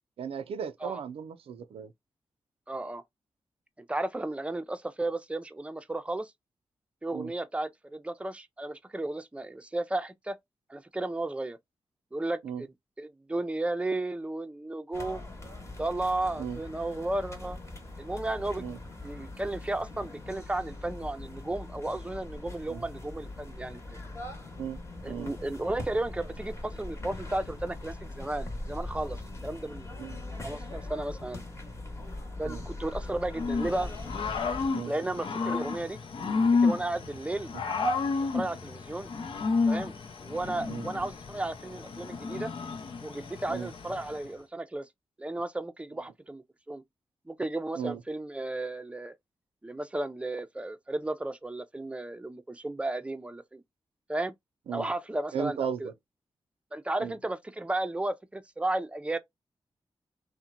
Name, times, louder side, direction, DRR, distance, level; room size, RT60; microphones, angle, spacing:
voice 1, 0.2-1.9 7.1-7.3 12.4-12.6 16.4-16.6 18.6-18.8 22.7-22.8 24.6-24.8 25.1-25.3 30.0-30.2 32.4-32.6 34.7-34.9 40.7-40.9 43.5-43.7 47.8-48.0 54.7-54.9 55.3-55.9 57.0-57.1, right 7 dB, 75° right, 0.4 m, -36 dB
voice 2, 2.7-3.0 3.8-6.3 7.0-10.4 10.7-11.6 12.1-15.3 15.8-17.6 18.0-18.6 19.0-23.8 25.0-29.2 29.4-29.9 30.4-31.4 32.4-33.9 34.9-36.0 36.6-37.5 38.3-39.1 39.7-39.9 40.2-42.5 43.0-44.9 45.2-46.8 47.3-49.2 49.6-53.6 54.1-54.3 54.7-55.9 56.7-59.2, right 2 dB, 10° right, 0.5 m, -34 dB
sound 1, 14.9-34.7, left 2 dB, 30° left, 1.0 m, -41 dB
Growling / Cricket, 33.3-44.3, left 4 dB, 65° left, 0.6 m, -31 dB
2.7 x 2.1 x 2.4 m
cardioid pair, 50°, 10 cm